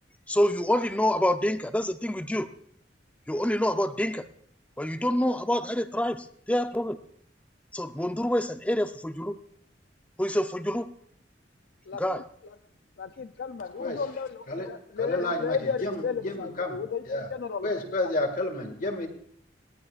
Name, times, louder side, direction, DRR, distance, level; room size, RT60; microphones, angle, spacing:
voice 1, 0.3-2.5 3.3-4.2 4.8-7.0 7.7-9.4 10.2-10.9 12.0-12.2, left 1 dB, 10° left, 9 dB, 0.6 m, -27 dB
voice 2, 11.9-12.2 13.0-18.1, left 5 dB, 65° left, 10 dB, 0.5 m, -34 dB
voice 3, 13.8-14.1 14.5-14.7 15.0-16.8 17.1-17.3 17.6-19.1, left 2 dB, 50° left, 5 dB, 1.9 m, -30 dB
20.5 x 16.5 x 2.4 m, 0.64 s
head